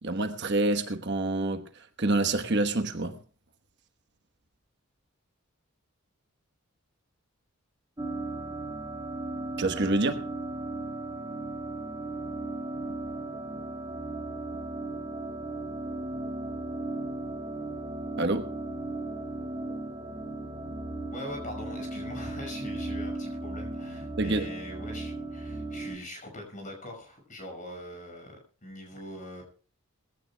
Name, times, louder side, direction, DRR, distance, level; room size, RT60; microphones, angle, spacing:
voice 1, 0.0-1.6 2.0-3.2 9.6-10.3 18.1-18.5 24.2-24.5, right 2 dB, 50° right, 1.1 m, -27 dB
sound 1, 8.0-26.0, right 2 dB, 20° right, 1.5 m, -36 dB
voice 2, 21.1-29.4, left 1 dB, 35° left, 5.8 m, -42 dB
21.5 x 16.0 x 2.2 m
head